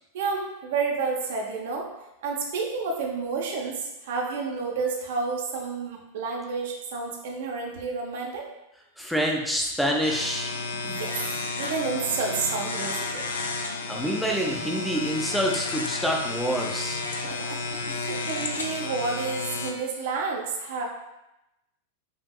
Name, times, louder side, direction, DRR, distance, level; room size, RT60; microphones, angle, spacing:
voice 1, 0.1-1.9 2.2-8.5 10.8-11.2 11.6-13.3 17.2-17.6 17.9-20.8, right 4 dB, 55° right, 0 dB, 0.7 m, -30 dB
voice 2, 9.0-10.5 13.9-17.0 17.9-18.0, equal, ahead, 0 dB, 0.6 m, -27 dB
sound 1, 10.0-19.7, left 3 dB, 65° left, 0.4 m, -32 dB
5.0 x 2.7 x 2.3 m, 0.91 s
figure-of-eight pair, 90°, 0 cm